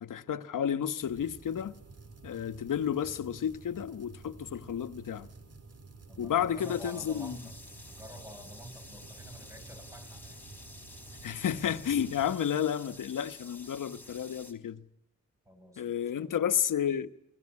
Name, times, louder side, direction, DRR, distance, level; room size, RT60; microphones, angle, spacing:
voice 1, 0.0-1.8 2.2-5.3 6.2-7.4 11.2-14.8 15.8-17.1, left 9 dB, 85° left, 1.2 m, -31 dB
sound 1, 1.0-12.3, right 4 dB, 50° right, 3.1 m, -51 dB
voice 2, 6.1-7.5 8.0-10.4 15.5-16.4, equal, 10° right, 7.7 m, -48 dB
sound 2, 6.6-14.5, left 2 dB, 5° left, 4.1 m, -51 dB
28.0 x 19.0 x 9.8 m
cardioid pair, 70°, 31 cm